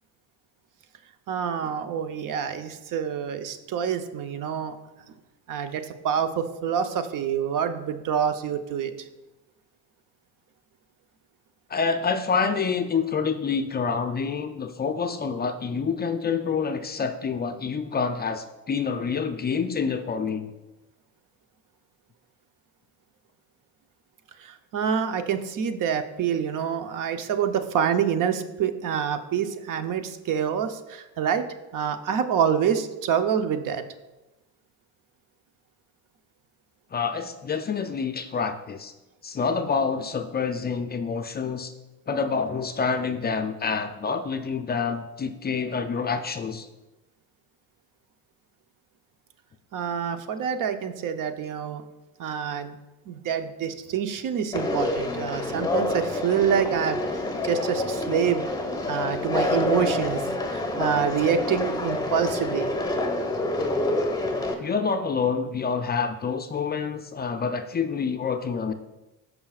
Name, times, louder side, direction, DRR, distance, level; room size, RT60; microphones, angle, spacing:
voice 1, 1.3-4.8 5.5-8.9 24.4-31.4 31.7-33.8 49.7-51.8 52.2-52.7 53.1-57.2 57.4-58.5 58.9-60.2 60.5-62.7, right 7 dB, 55° right, 9 dB, 0.8 m, -26 dB
voice 2, 11.7-20.5 36.9-38.9 39.2-41.7 42.1-46.7 64.6-68.7, left 5 dB, 25° left, 8 dB, 0.5 m, -27 dB
Conversation, 54.5-64.5, left 2 dB, 10° left, 1.2 m, -27 dB
14.5 x 5.5 x 2.4 m, 1.0 s
supercardioid pair, 100°, 38 cm